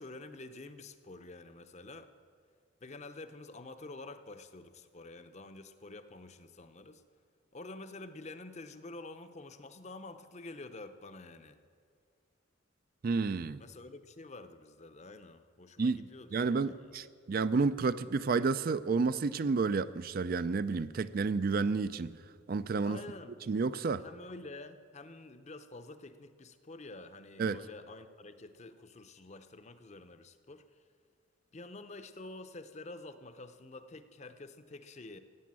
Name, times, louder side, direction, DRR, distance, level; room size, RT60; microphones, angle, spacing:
voice 1, 0.0-2.1 2.8-7.0 7.5-11.6 13.6-17.0 22.8-23.4 24.0-30.8 31.5-35.2, left 2 dB, 35° left, 0.7 m, -48 dB
voice 2, 13.0-13.6 15.8-22.2 22.5-23.0 23.5-24.0 27.4-27.6, right 4 dB, 50° right, 0.4 m, -30 dB
15.5 x 8.3 x 8.8 m
head